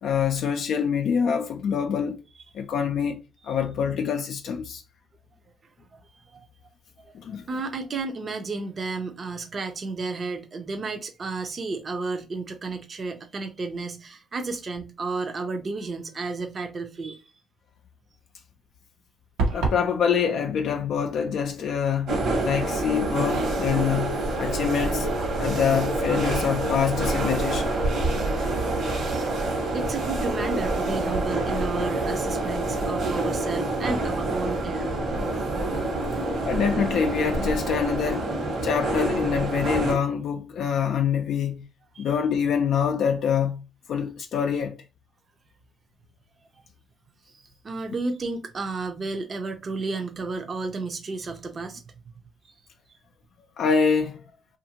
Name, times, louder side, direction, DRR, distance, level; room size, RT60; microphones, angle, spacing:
voice 1, 0.0-2.2 2.5-4.8 7.1-7.5 19.5-25.1 25.4-27.8 36.5-38.3 38.6-41.7 42.0-43.6 43.9-44.8 53.6-54.2, left 7 dB, 70° left, 0.3 m, -25 dB
voice 2, 5.9-6.5 7.0-17.3 28.2-28.6 28.9-29.4 29.7-34.9 37.6-37.8 41.9-42.1 47.3-51.8 52.4-52.5, right 3 dB, 45° right, 0.6 m, -32 dB
sound 1, 19.4-19.9, right 3 dB, 90° right, 0.8 m, -24 dB
sound 2, 22.1-40.0, right 2 dB, 65° right, 1.2 m, -27 dB
2.6 x 2.5 x 2.8 m
supercardioid pair, 70°, 0 cm